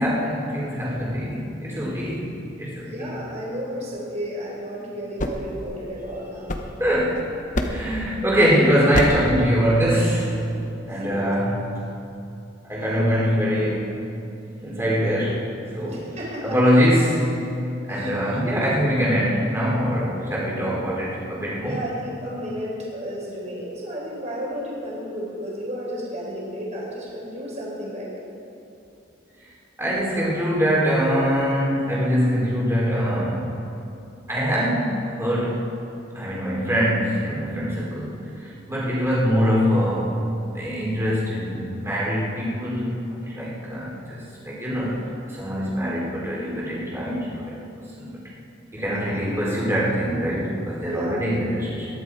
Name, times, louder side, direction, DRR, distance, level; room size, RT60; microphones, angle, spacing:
voice 1, 0.0-2.3 2.6-2.9 6.8-7.3 7.6-10.4 10.9-11.7 12.6-14.0 14.6-15.4 15.7-16.0 16.4-17.2 17.9-21.7 29.8-33.6 34.3-35.7 36.1-40.2 40.5-42.9 43.3-45.0 45.3-47.6 48.0-48.2 48.7-51.9, equal, 15° right, -6 dB, 3.8 m, -23 dB
voice 2, 2.8-6.6 10.9-11.2 15.8-16.7 17.9-18.3 21.6-28.1 48.9-49.2 50.8-51.2, equal, 35° right, -4 dB, 4.3 m, -33 dB
sound 1, 4.9-7.1 7.5-8.0 8.9-9.4, left 1 dB, 40° left, 1.1 m, -28 dB
22.0 x 11.5 x 4.8 m, 2.8 s
head